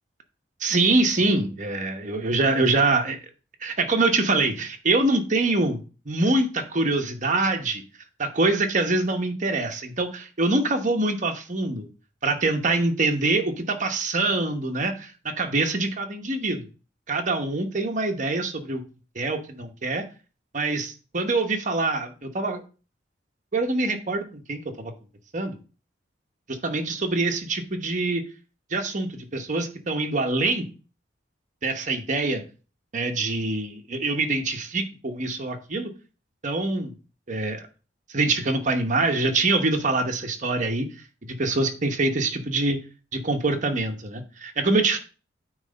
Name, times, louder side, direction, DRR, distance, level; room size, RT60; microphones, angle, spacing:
voice 1, 0.6-3.2 3.6-7.8 8.2-11.9 12.2-16.7 17.1-18.8 19.1-20.0 20.5-22.6 23.5-24.9 25.3-25.6 26.5-28.2 28.7-30.7 31.6-32.4 32.9-35.9 36.4-36.9 37.3-37.6 38.1-40.9 41.4-42.8 43.1-45.0, right 2 dB, 40° right, 5 dB, 1.0 m, -24 dB
8.9 x 3.2 x 5.3 m, 0.35 s
head